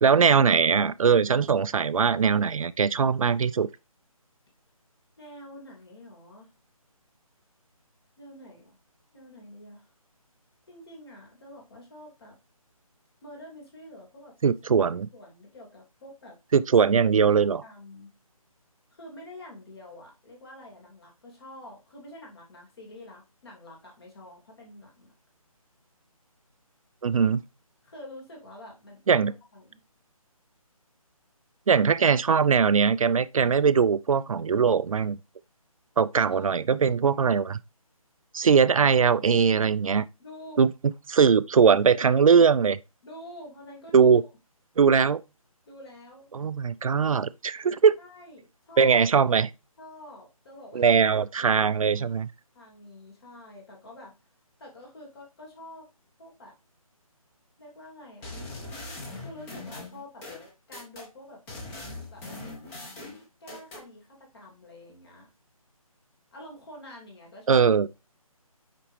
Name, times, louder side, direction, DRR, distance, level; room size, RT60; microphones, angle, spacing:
voice 1, 0.0-3.7 14.4-15.1 16.5-17.6 27.0-27.4 29.1-29.3 31.7-35.2 36.0-37.6 38.3-40.0 40.6-40.7 41.1-42.8 43.9-44.2 44.8-45.2 46.3-48.0 48.8-49.5 50.7-52.3 67.5-67.9, right 6 dB, 65° right, 0.4 m, -21 dB
voice 2, 5.2-6.5 8.2-8.8 9.1-9.9 10.7-12.4 13.2-14.5 14.8-16.4 17.3-17.4 17.6-18.1 18.9-25.1 27.8-29.8 36.2-36.7 40.2-40.6 43.0-44.3 45.7-46.3 48.0-49.0 49.8-51.0 51.5-52.1 52.5-54.2 54.6-55.9 56.2-56.6 57.6-58.4 59.1-60.2 60.7-61.4 62.1-62.2 63.4-65.3 66.3-67.7, left 1 dB, 45° left, 2.7 m, -47 dB
sound 1, 58.2-61.1 61.5-63.8, left 2 dB, 10° left, 0.9 m, -40 dB
5.8 x 5.1 x 3.2 m
figure-of-eight pair, 160°, 19 cm